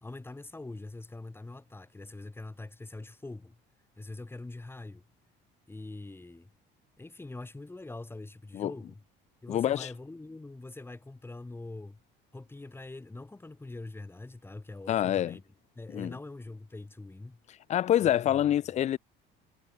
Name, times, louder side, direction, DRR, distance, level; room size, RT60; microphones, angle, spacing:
voice 1, 0.0-3.6 4.0-5.0 5.7-6.5 7.0-9.0 9.4-12.0 12.3-15.4 15.8-17.4 18.0-18.4, left 2 dB, 10° left, 1.4 m, -43 dB
voice 2, 9.5-9.9 14.9-15.4 15.9-16.2 17.7-19.0, left 11 dB, 35° left, 0.4 m, -26 dB
supercardioid pair, 95°, 21 cm